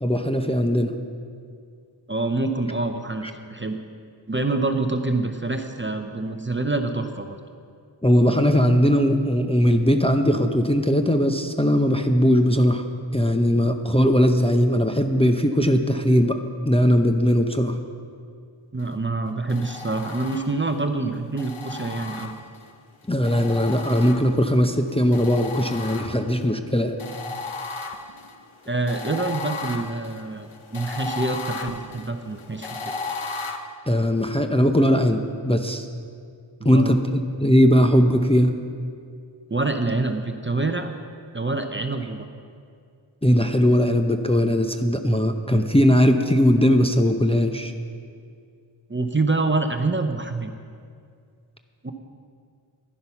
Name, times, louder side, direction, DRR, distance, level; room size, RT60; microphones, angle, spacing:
voice 1, 0.0-0.9 8.0-12.9 13.1-16.4 16.7-17.8 23.1-27.0 33.9-35.9 36.6-38.5 43.2-47.7, equal, 10° left, 5 dB, 0.7 m, -19 dB
voice 2, 2.1-3.8 4.3-7.4 18.7-22.3 28.7-32.9 36.6-37.0 39.5-40.9 41.3-42.3 48.9-50.5 51.8-51.9, right 3 dB, 25° right, 6 dB, 0.7 m, -26 dB
sound 1, 19.5-20.8 21.4-22.7 23.2-24.6 25.1-26.4 27.0-33.6, left 3 dB, 80° left, 1.0 m, -35 dB
11.5 x 10.0 x 5.7 m, 2.2 s
wide cardioid pair, 65°, 48 cm